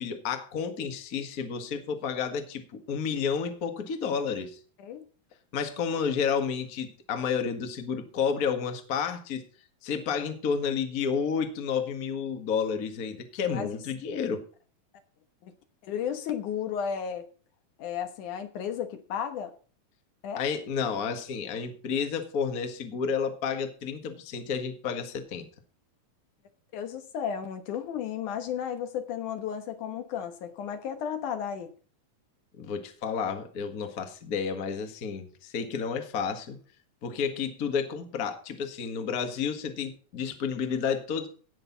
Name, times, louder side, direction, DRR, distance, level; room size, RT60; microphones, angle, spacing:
voice 1, 0.0-4.6 5.5-9.4 9.8-14.4 20.4-25.5 32.6-36.6 37.0-41.3, left 6 dB, 35° left, 6 dB, 1.6 m, -31 dB
voice 2, 15.8-17.3 17.8-19.5 20.2-20.4 26.7-31.7, left 8 dB, 70° left, 8 dB, 2.6 m, -33 dB
18.0 x 6.7 x 4.0 m, 0.39 s
omnidirectional pair, 3.8 m